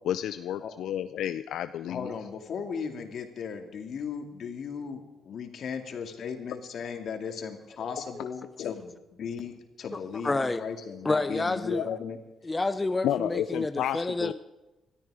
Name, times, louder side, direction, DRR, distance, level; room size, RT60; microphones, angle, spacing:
voice 1, 0.1-2.1 8.6-8.7 11.7-12.0 13.0-14.3, left 11 dB, 80° left, 11 dB, 0.5 m, -31 dB
voice 2, 1.9-12.2 12.4-12.5, left 6 dB, 60° left, 5 dB, 2.5 m, -37 dB
voice 3, 9.9-10.6 11.0-11.9 12.4-14.3, left 2 dB, 20° left, 11 dB, 0.7 m, -29 dB
20.5 x 13.5 x 4.9 m, 1.0 s
cardioid pair, 90°, 0 cm